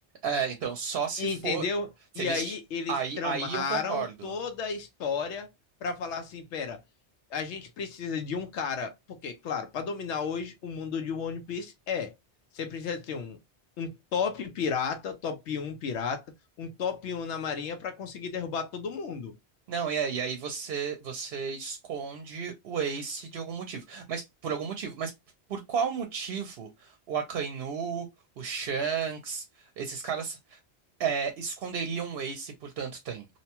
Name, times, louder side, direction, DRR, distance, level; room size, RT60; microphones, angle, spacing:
voice 1, 0.2-1.6 2.2-2.5 2.9-4.3 19.7-25.1 25.5-28.1 28.4-30.6 31.0-33.3, right 6 dB, 65° right, 0.7 m, -33 dB
voice 2, 1.2-1.9 2.1-5.5 5.8-6.8 7.3-12.1 12.5-13.4 13.8-16.2 16.6-19.3, left 5 dB, 85° left, 0.9 m, -33 dB
2.8 x 2.1 x 2.8 m
omnidirectional pair, 1.2 m